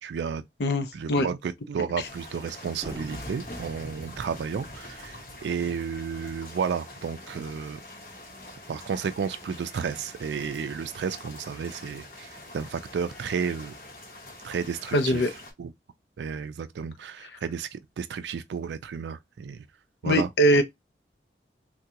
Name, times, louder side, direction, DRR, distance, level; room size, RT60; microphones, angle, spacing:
voice 1, 0.0-0.4 0.9-7.8 8.7-13.7 14.4-15.3 15.6-15.7 16.2-19.6 20.0-20.6, right 6 dB, 80° right, 0.3 m, -32 dB
voice 2, 0.6-1.2 14.9-15.3 20.0-20.6, equal, 75° left, 0.5 m, -22 dB
sound 1, 2.0-15.5, left 1 dB, 50° left, 1.0 m, -45 dB
sound 2, 2.8-6.4, right 1 dB, 30° right, 0.6 m, -44 dB
3.5 x 2.2 x 2.8 m
head